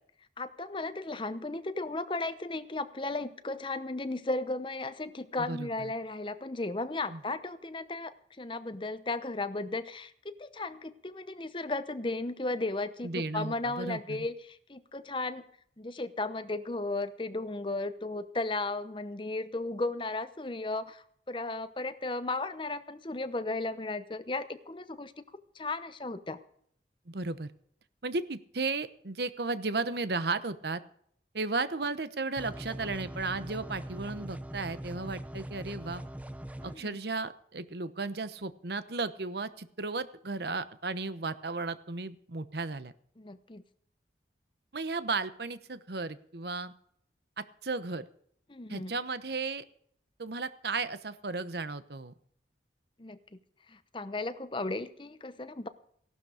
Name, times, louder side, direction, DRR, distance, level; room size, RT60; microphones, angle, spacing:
voice 1, 0.4-15.5 15.8-25.2 25.5-26.4 36.6-37.0 43.2-43.6 48.5-48.9 53.0-53.2 53.7-55.7, left 2 dB, 30° left, 12 dB, 0.8 m, -35 dB
voice 2, 5.4-5.9 7.1-7.2 13.0-14.3 27.1-27.5 28.0-30.8 31.3-36.0 36.6-42.9 44.7-46.7 47.4-48.0 48.7-49.6 50.2-52.1, right 3 dB, 65° right, 13 dB, 1.0 m, -34 dB
sound 1, 32.4-36.8, right 1 dB, 10° right, 0.7 m, -41 dB
16.0 x 12.0 x 5.0 m, 0.65 s
head